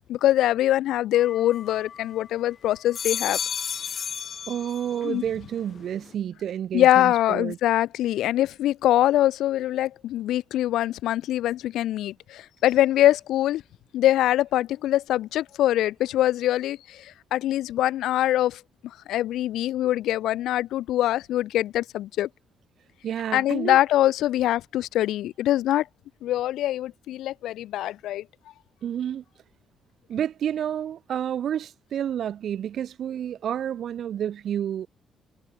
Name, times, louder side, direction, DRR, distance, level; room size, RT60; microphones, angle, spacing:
voice 1, 0.1-3.4 5.0-5.2 6.7-13.6 13.9-18.6 19.1-22.3 23.3-25.9 26.2-28.2, left 13 dB, 85° left, 0.8 m, -23 dB
sound 1, 1.1-2.3 2.7-5.2 5.5-6.1, left 7 dB, 50° left, 3.0 m, -33 dB
voice 2, 4.5-7.6 23.0-23.8 28.8-29.2 30.1-34.9, right 9 dB, 65° right, 1.3 m, -30 dB
cardioid pair, 90°, 0 cm